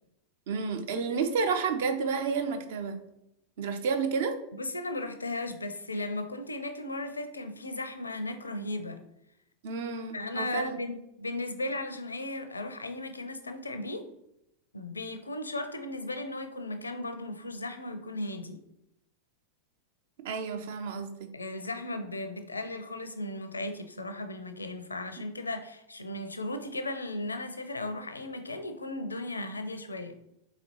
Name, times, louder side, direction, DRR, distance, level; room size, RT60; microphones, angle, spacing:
voice 1, 0.5-3.0 3.6-4.4 9.6-10.8 20.2-21.3, right 5 dB, 55° right, 7 dB, 0.6 m, -30 dB
voice 2, 4.5-9.0 10.1-14.1 14.7-18.6 21.3-30.2, left 2 dB, 80° left, 8 dB, 0.5 m, -36 dB
4.1 x 4.0 x 2.9 m, 0.81 s
figure-of-eight pair, 90°, 0 cm